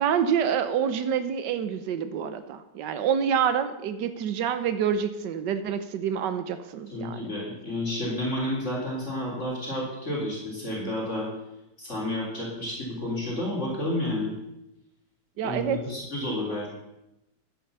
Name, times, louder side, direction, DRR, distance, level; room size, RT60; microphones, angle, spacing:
voice 1, 0.0-7.3 15.4-15.8, right 8 dB, 80° right, 10 dB, 1.5 m, -27 dB
voice 2, 6.9-11.3 11.8-14.4 15.4-16.7, left 1 dB, 40° left, -4 dB, 4.0 m, -30 dB
11.5 x 10.0 x 6.8 m, 0.89 s
omnidirectional pair, 1.9 m